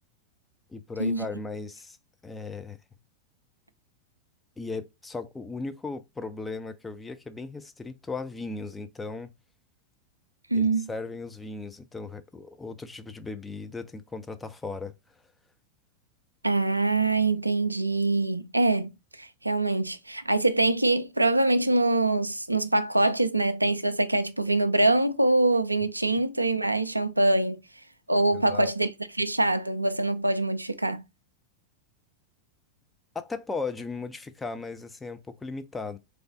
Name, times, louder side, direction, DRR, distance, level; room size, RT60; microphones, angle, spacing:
voice 1, 0.7-2.0 2.2-2.8 4.6-9.3 10.5-14.9 28.3-28.7 33.1-36.0, left 3 dB, 10° left, 0.6 m, -37 dB
voice 2, 10.5-10.9 16.4-18.9 19.2-27.6 28.1-31.0, right 2 dB, 85° right, 0.4 m, -24 dB
3.9 x 3.4 x 3.9 m
figure-of-eight pair, 90°, 0 cm